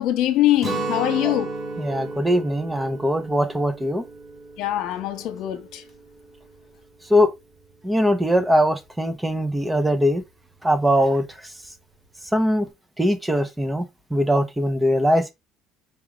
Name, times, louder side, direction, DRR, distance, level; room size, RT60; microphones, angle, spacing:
voice 1, 0.0-1.5 4.6-5.8, left 13 dB, 75° left, 1.1 m, -22 dB
Guitar, 0.6-6.4, right 3 dB, 25° right, 2.3 m, -33 dB
voice 2, 1.8-4.0 7.1-7.3 7.8-10.2 10.6-11.3 12.3-12.7 13.0-13.8 14.1-15.3, equal, 10° right, 0.8 m, -21 dB
4.8 x 3.6 x 3.0 m
supercardioid pair, 85°, 0 cm